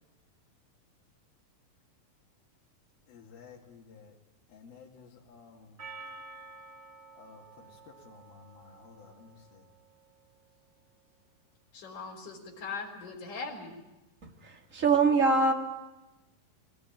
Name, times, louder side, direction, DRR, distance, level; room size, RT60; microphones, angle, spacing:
voice 1, 3.1-4.1 4.5-5.9 7.2-9.7, left 5 dB, 90° left, -3 dB, 4.2 m, -54 dB
Percussion, 5.8-10.1, right 3 dB, 75° right, 0.6 m, -50 dB
voice 2, 11.7-13.7, left 4 dB, 60° left, -4 dB, 5.2 m, -40 dB
voice 3, 14.2-15.5, right 4 dB, 25° right, 3 dB, 2.0 m, -24 dB
23.0 x 19.0 x 9.1 m, 1.0 s
omnidirectional pair, 4.1 m